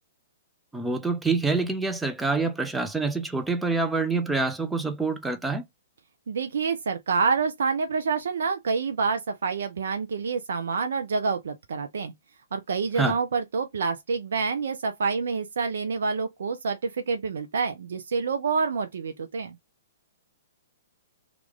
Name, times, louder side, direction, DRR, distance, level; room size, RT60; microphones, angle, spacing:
voice 1, 0.7-5.6 13.0-13.2, right 3 dB, 5° right, 0.6 m, -26 dB
voice 2, 6.3-12.1 12.5-19.6, right 5 dB, 65° right, 0.5 m, -27 dB
3.0 x 2.5 x 3.5 m
figure-of-eight pair, 115°, 0 cm